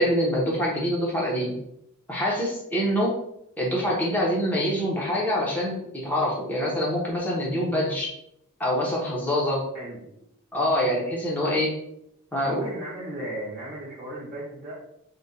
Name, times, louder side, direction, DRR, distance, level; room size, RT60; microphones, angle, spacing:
voice 1, 0.0-1.5 2.1-3.1 3.6-5.8 6.0-8.1 8.6-9.6 10.5-11.7 12.3-12.6, equal, 10° left, -4 dB, 1.0 m, -25 dB
voice 2, 9.7-10.1 11.4-11.6 12.4-14.7, right 1 dB, 30° right, -7 dB, 1.2 m, -36 dB
3.7 x 2.5 x 4.2 m, 0.76 s
head